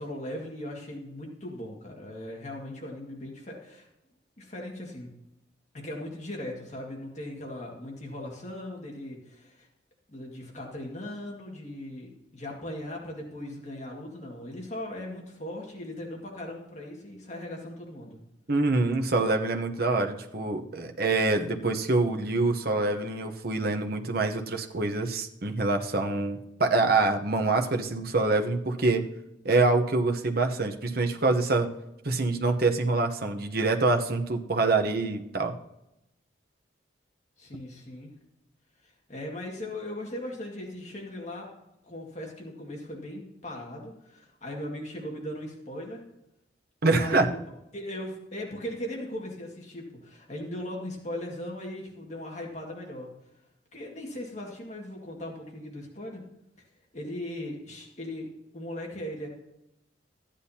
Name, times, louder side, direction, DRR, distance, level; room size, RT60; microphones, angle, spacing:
voice 1, 0.0-3.9 4.4-5.1 5.7-9.7 10.1-18.2 37.4-38.1 38.8-41.5 41.8-46.0 47.0-47.2 47.7-53.1 53.7-56.2 56.9-59.3, left 1 dB, 35° left, -1 dB, 1.9 m, -38 dB
voice 2, 18.5-29.0 29.4-31.7 32.0-35.5 46.8-47.3, right 3 dB, 50° right, 3 dB, 0.9 m, -25 dB
14.0 x 10.0 x 2.8 m, 0.86 s
head